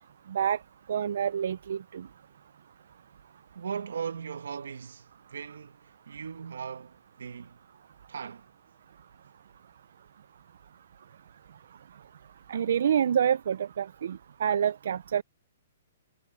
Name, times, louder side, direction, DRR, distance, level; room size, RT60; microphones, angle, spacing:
voice 1, 0.3-0.6 0.9-2.1 12.5-15.2, right 8 dB, 65° right, 0.4 m, -27 dB
voice 2, 3.5-5.8 6.1-7.6 8.1-8.5, right 6 dB, 90° right, 1.4 m, -38 dB
hypercardioid pair, 165°, 0 cm